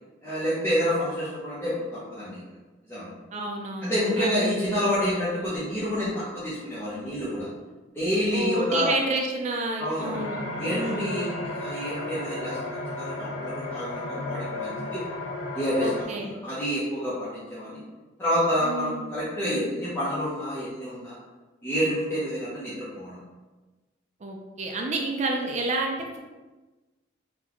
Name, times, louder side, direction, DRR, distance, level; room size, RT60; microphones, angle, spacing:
voice 1, 0.2-2.4 2.9-3.1 3.8-7.5 7.9-8.9 9.8-10.2 10.6-12.6 13.0-15.0 15.5-17.8 18.2-21.2 21.6-23.2, equal, 10° left, -11 dB, 0.7 m, -28 dB
voice 2, 3.3-4.3 8.3-11.2 15.8-16.3 18.6-19.0 24.2-26.2, right 2 dB, 35° right, 1 dB, 0.4 m, -30 dB
sound 1, 10.1-16.0, left 2 dB, 75° left, 0.4 m, -34 dB
3.9 x 2.2 x 2.9 m, 1.2 s
head